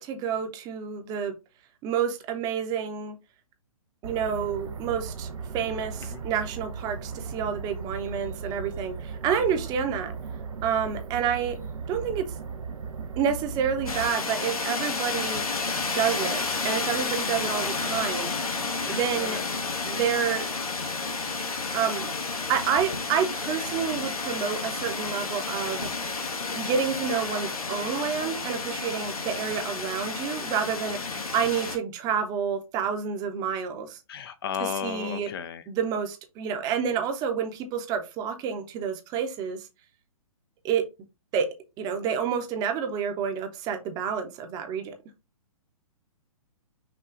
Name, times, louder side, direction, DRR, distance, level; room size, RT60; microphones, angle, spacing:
voice 1, 0.0-1.3 1.8-3.2 4.0-5.3 5.5-10.2 10.6-11.6 11.9-12.3 13.2-15.4 15.9-18.3 18.9-19.4 19.8-20.5 21.7-22.1 22.5-25.9 26.5-31.0 31.3-34.0 34.6-35.3 35.7-39.7 40.6-40.8 41.3-41.5 41.8-44.9, right 7 dB, 20° right, 0.7 m, -29 dB
sound 1, 4.0-14.1, right 5 dB, 65° right, 0.7 m, -37 dB
sound 2, 13.9-31.8, left 4 dB, 75° left, 1.2 m, -31 dB
voice 2, 18.8-19.6 31.1-31.2 34.1-35.6, left 9 dB, 40° left, 0.5 m, -35 dB
5.8 x 2.3 x 3.7 m
figure-of-eight pair, 125°, 19 cm